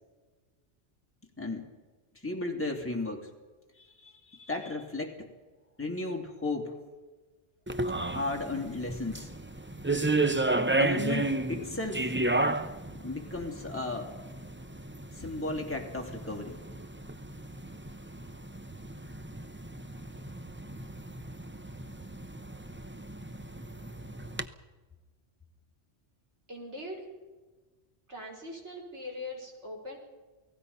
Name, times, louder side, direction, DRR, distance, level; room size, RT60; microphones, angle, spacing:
voice 1, 1.4-1.7 2.1-3.3 3.8-5.3 5.8-6.8 8.1-9.3 10.8-12.2 12.9-14.1 15.1-16.6, left 2 dB, 10° left, 1 dB, 2.9 m, -35 dB
sound 1, 7.7-24.5, right 2 dB, 10° right, 0.7 m, -33 dB
voice 2, 26.5-27.1 28.1-30.0, left 1 dB, 80° right, 0 dB, 5.5 m, -41 dB
29.0 x 18.5 x 5.6 m, 1.3 s
omnidirectional pair, 1.2 m